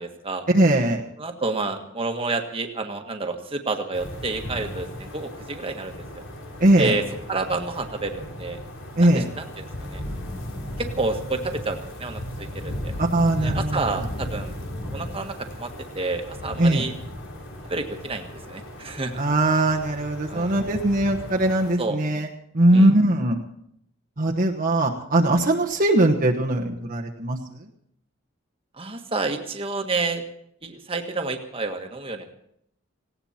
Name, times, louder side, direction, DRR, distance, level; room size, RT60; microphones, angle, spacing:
voice 1, 0.0-0.4 1.2-6.2 6.8-7.0 7.3-8.6 9.0-10.0 10.8-12.9 13.4-14.5 14.9-15.7 15.9-16.9 17.7-19.2 20.3-20.5 21.8-22.0 22.7-22.9 28.8-30.2 30.6-32.2, right 3 dB, 25° right, 4 dB, 1.6 m, -29 dB
voice 2, 0.5-1.0 6.6-6.9 9.0-9.3 13.0-14.0 16.6-16.9 19.2-22.3 22.5-23.4 24.2-27.4, right 1 dB, 45° right, -1 dB, 1.2 m, -20 dB
sound 1, 3.9-21.7, left 1 dB, 75° left, 3.6 m, -36 dB
19.0 x 17.0 x 4.4 m, 0.73 s
head